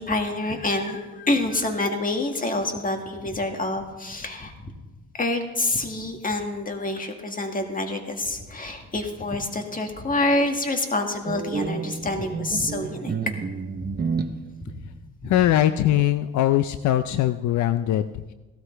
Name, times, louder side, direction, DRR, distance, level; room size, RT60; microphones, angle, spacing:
voice 1, 0.0-4.7 5.1-13.1 13.7-13.9 14.6-14.7 15.2-15.3, left 2 dB, 25° left, 4 dB, 1.9 m, -27 dB
sound 1, 11.3-14.4, right 5 dB, 35° right, 0.8 m, -30 dB
voice 2, 15.2-18.3, left 12 dB, 70° left, 12 dB, 0.5 m, -21 dB
16.5 x 13.0 x 3.3 m, 1.2 s
cardioid pair, 90°, 30 cm